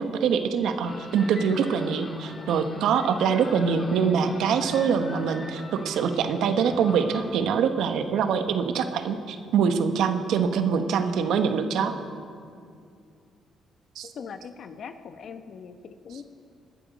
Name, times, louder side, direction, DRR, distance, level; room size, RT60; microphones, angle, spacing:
voice 1, 0.0-11.9 14.0-14.1, right 6 dB, 80° right, 8 dB, 1.1 m, -24 dB
sound 1, 0.8-7.4, left 2 dB, 35° left, 2.7 m, -41 dB
voice 2, 14.1-16.2, left 6 dB, 60° left, 9 dB, 0.9 m, -41 dB
20.5 x 12.0 x 5.2 m, 2.4 s
cardioid pair, 90°, 0 cm